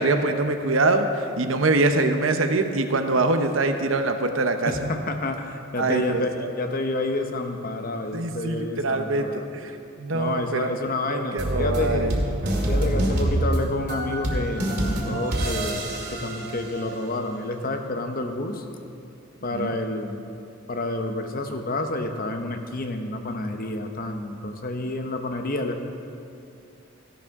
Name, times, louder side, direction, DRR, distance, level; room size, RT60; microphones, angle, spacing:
voice 1, 0.0-4.9 5.8-6.5 8.1-9.7 10.0-10.7 11.1-12.2 19.5-19.7, right 2 dB, 85° right, 7 dB, 0.9 m, -24 dB
voice 2, 4.7-6.3 6.6-9.5 10.1-12.1 12.7-18.6 19.4-20.2 20.7-25.8, left 2 dB, 45° left, 5 dB, 0.9 m, -29 dB
sound 1, 11.4-17.2, right 1 dB, 55° right, 2.2 m, -26 dB
15.5 x 11.0 x 3.7 m, 2.6 s
head